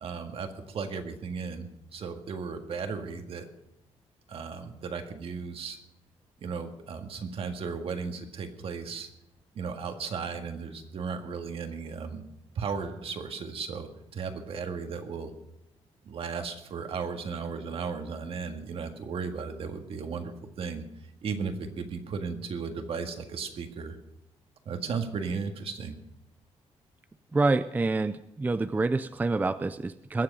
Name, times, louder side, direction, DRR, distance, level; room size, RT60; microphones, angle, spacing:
voice 1, 0.0-3.5 4.3-5.8 6.4-9.1 9.6-12.2 12.6-15.3 16.1-20.8 21.2-24.0 24.7-26.0, right 5 dB, 60° right, 6 dB, 1.8 m, -35 dB
voice 2, 27.3-30.2, right 3 dB, 15° right, 12 dB, 0.4 m, -27 dB
21.5 x 7.8 x 5.4 m, 0.84 s
cardioid pair, 135°, 11 cm